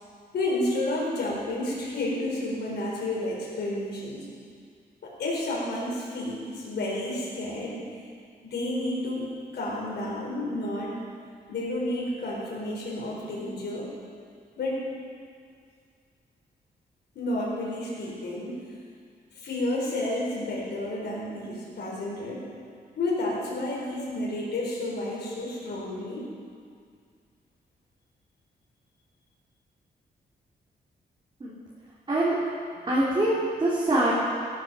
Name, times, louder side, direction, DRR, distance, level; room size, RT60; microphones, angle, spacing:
voice 1, 0.3-4.3 5.0-7.8 8.4-11.0 11.5-13.9 14.6-14.9 17.1-18.6 19.4-22.4 23.0-26.3, left 1 dB, 80° left, -4 dB, 4.2 m, -31 dB
voice 2, 32.9-34.1, right 1 dB, 30° right, -7 dB, 2.7 m, -24 dB
18.5 x 9.6 x 5.3 m, 2.1 s
wide cardioid pair, 130°, 17 cm